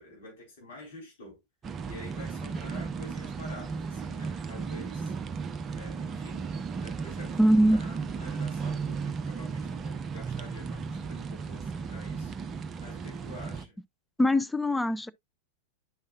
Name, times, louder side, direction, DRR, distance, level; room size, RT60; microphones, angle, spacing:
voice 1, 0.0-1.4 1.8-5.1 5.7-13.8, left 1 dB, 55° left, 4.2 m, -48 dB
sound 1, 1.6-13.7, right 5 dB, 25° right, 0.8 m, -35 dB
voice 2, 7.4-7.8 14.2-15.1, equal, 5° left, 0.4 m, -22 dB
9.8 x 5.6 x 2.4 m
figure-of-eight pair, 90°, 0 cm